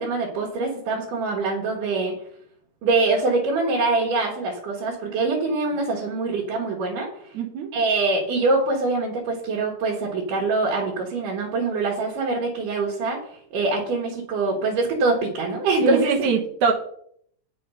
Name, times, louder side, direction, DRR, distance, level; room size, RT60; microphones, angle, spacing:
voice 1, 0.0-2.1 2.8-7.3 7.7-13.2 13.5-16.1, right 3 dB, 85° right, -3 dB, 3.2 m, -24 dB
voice 2, 7.3-7.7 15.8-16.7, right 5 dB, 70° right, -1 dB, 2.5 m, -23 dB
9.0 x 6.3 x 5.6 m, 0.66 s
omnidirectional pair, 3.6 m